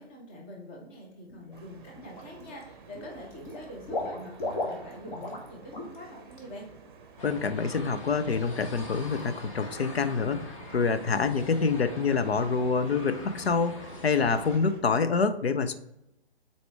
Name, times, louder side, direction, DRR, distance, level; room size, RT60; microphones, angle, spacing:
voice 1, 0.0-6.7, left 1 dB, 10° left, 0 dB, 0.5 m, -45 dB
Water / Liquid, 1.3-1.6 2.0-2.6 2.9-5.5 5.7-6.0 6.3-6.4, left 2 dB, 50° left, 1.6 m, -35 dB
sound 1, 1.5-14.8, right 5 dB, 20° right, 0.7 m, -51 dB
voice 2, 7.2-15.7, left 5 dB, 70° left, 10 dB, 0.6 m, -26 dB
sound 2, 7.2-14.6, left 2 dB, 30° left, 1.1 m, -44 dB
7.7 x 4.3 x 3.4 m, 0.85 s
figure-of-eight pair, 140°, 32 cm